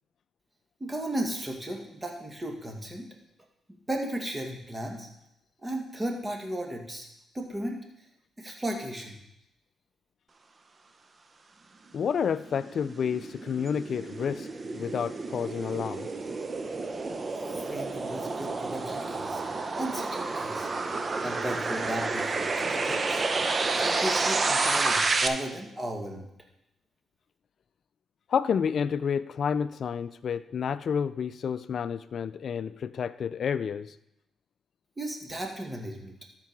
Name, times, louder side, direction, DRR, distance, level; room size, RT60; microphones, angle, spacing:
voice 1, 0.8-3.1 3.7-5.1 5.6-7.1 7.3-7.8 8.4-9.2 17.5-19.4 19.8-20.7 21.2-23.2 23.7-26.3 35.0-36.1, right 1 dB, 20° right, 2 dB, 2.0 m, -35 dB
voice 2, 11.9-14.5 14.7-16.1 28.3-33.9, left 7 dB, 60° left, 14 dB, 0.4 m, -30 dB
sound 1, 12.1-25.3, right 3 dB, 40° right, 0.8 m, -30 dB
13.0 x 4.6 x 4.7 m, 0.80 s
cardioid pair, 70°, 0 cm